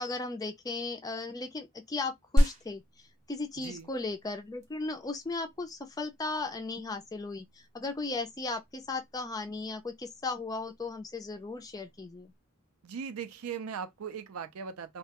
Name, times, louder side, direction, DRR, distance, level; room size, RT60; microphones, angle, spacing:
voice 1, 0.0-2.8 3.3-12.3, left 3 dB, 15° left, 0.3 m, -36 dB
sound 1, 2.4-12.3, equal, 35° right, 0.6 m, -35 dB
voice 2, 3.6-3.9 12.8-15.0, right 7 dB, 80° right, 0.4 m, -39 dB
2.2 x 2.1 x 2.8 m
head